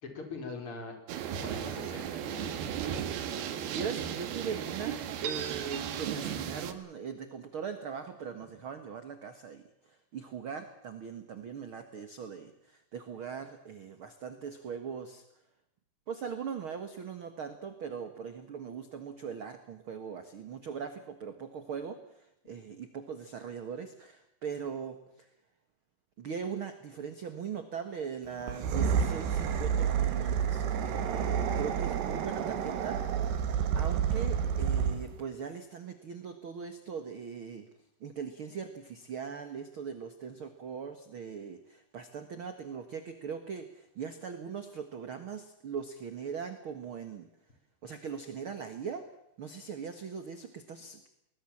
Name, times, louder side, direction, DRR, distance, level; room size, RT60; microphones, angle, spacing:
voice 1, 0.0-1.0 1.4-2.6, left 4 dB, 30° left, 4 dB, 5.2 m, -42 dB
sound 1, 1.1-6.7, right 9 dB, 70° right, 3.5 m, -35 dB
voice 2, 3.7-15.2 16.1-25.3 26.2-37.7 38.0-47.3 47.8-49.1 49.4-51.1, right 6 dB, 55° right, 8 dB, 1.5 m, -40 dB
sound 2, 28.4-35.2, right 7 dB, 90° right, 4.0 m, -29 dB
22.0 x 20.5 x 7.3 m, 0.80 s
omnidirectional pair, 4.7 m